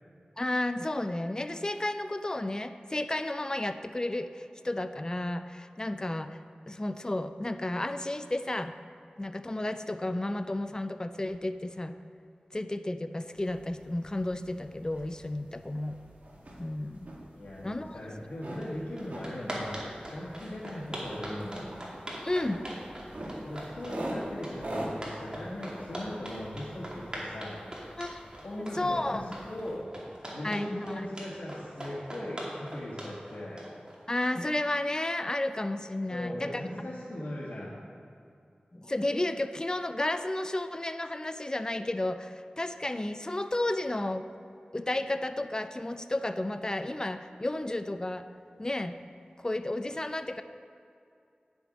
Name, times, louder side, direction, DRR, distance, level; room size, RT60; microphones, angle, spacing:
voice 1, 0.4-6.4 6.7-8.7 9.2-11.9 12.5-16.0 16.6-17.1 17.6-18.0 22.2-22.6 28.0-28.2 28.7-29.2 30.4-31.1 34.1-36.6 38.7-44.3 44.7-48.3 48.6-48.9 49.4-50.4, left 1 dB, 25° left, 9 dB, 0.4 m, -32 dB
sound 1, 13.3-29.8, right 1 dB, 55° right, 1.8 m, -44 dB
voice 2, 17.3-21.7 23.4-27.8 28.4-29.8 30.3-33.6 36.1-37.8, left 1 dB, 80° left, -8 dB, 1.6 m, -39 dB
sound 2, 18.6-18.7 19.0-34.5, right 1 dB, 30° right, 2.3 m, -41 dB
9.7 x 7.0 x 5.2 m, 2.5 s
wide cardioid pair, 60°, 3 cm